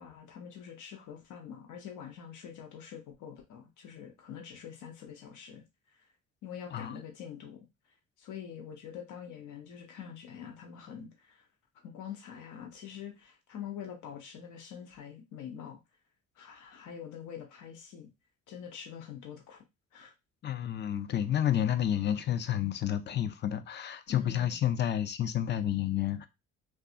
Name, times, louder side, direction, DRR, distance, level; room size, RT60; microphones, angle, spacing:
voice 1, 0.0-5.6 6.4-7.7 8.2-11.5 11.8-15.8 16.4-18.1 18.5-19.6 19.9-20.1 24.1-24.6, left 8 dB, 75° left, 0.8 m, -45 dB
voice 2, 20.4-26.3, left 10 dB, 35° left, 0.4 m, -30 dB
2.6 x 2.3 x 2.4 m
cardioid pair, 90°, 30 cm